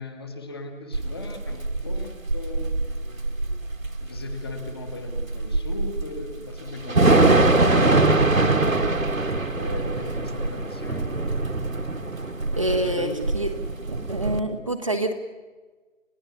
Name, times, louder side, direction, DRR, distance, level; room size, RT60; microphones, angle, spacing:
voice 1, 0.0-3.6 4.0-8.8 9.5-11.2 12.8-13.2, left 2 dB, 20° left, 6 dB, 1.4 m, -38 dB
Thunder / Rain, 0.9-14.4, right 2 dB, 80° right, 1.9 m, -23 dB
voice 2, 12.6-13.5 13.9-15.1, right 1 dB, 25° right, 3 dB, 0.9 m, -26 dB
29.5 x 16.5 x 7.1 m, 1.3 s
figure-of-eight pair, 160°, 40 cm